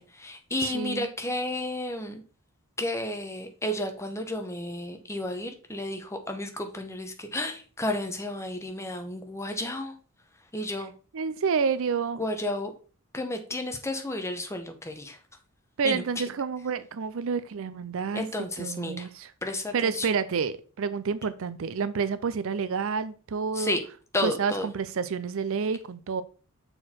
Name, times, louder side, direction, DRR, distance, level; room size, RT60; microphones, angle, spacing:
voice 1, 0.0-2.2 2.8-9.9 10.5-10.9 12.2-12.7 13.1-15.2 15.8-16.0 18.1-19.1 19.4-20.1 23.5-23.8 24.1-24.7, left 1 dB, 15° left, 0.9 m, -32 dB
voice 2, 0.6-1.1 11.1-12.2 15.8-18.2 18.6-19.3 19.7-23.8 24.2-26.2, right 5 dB, 65° right, 0.5 m, -29 dB
6.4 x 4.4 x 4.3 m
head